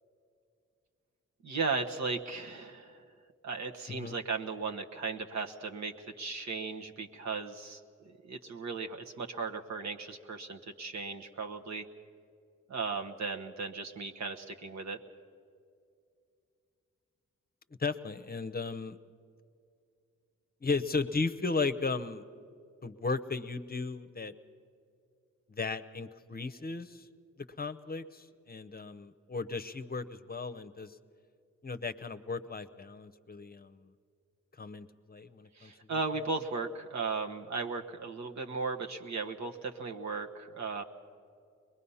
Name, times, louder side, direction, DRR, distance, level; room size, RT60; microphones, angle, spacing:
voice 1, 1.4-2.9 3.4-7.8 8.2-11.9 12.7-15.0 35.6-40.8, right 4 dB, 65° right, 3 dB, 1.2 m, -36 dB
voice 2, 17.8-19.0 20.6-22.3 22.8-24.3 25.5-27.1 27.6-31.0 31.6-33.8 34.6-36.0, left 4 dB, 30° left, 12 dB, 0.8 m, -35 dB
22.5 x 21.0 x 5.6 m, 2.4 s
supercardioid pair, 45°, 30 cm